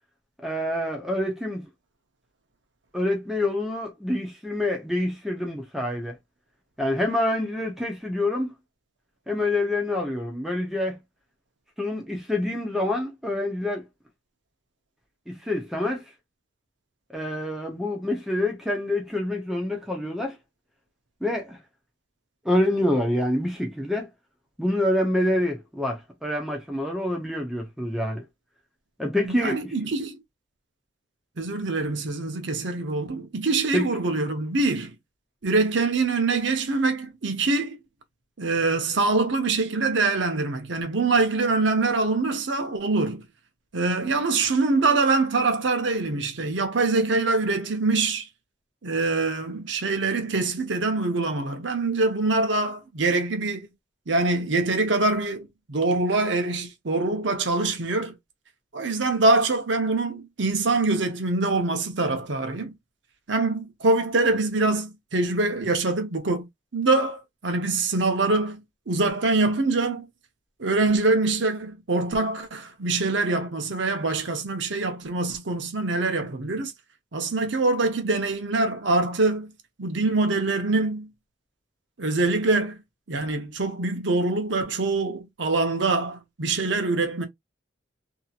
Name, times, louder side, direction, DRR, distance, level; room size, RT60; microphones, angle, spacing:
voice 1, 0.4-1.6 2.9-6.1 6.8-8.5 9.3-11.0 11.8-13.8 15.3-16.0 17.1-20.3 21.2-21.6 22.4-24.1 24.6-28.2 29.0-29.7 33.7-33.9, left 1 dB, ahead, 0.7 m, -26 dB
voice 2, 29.2-30.2 31.4-34.9 35.4-37.8 38.4-43.2 43.7-48.3 48.8-53.7 54.1-58.1 58.7-62.7 63.3-66.5 66.7-70.0 70.6-76.7 77.1-79.5 79.8-81.1 82.0-82.8 83.1-87.3, right 3 dB, 70° right, 0.8 m, -24 dB
2.8 x 2.7 x 2.4 m
head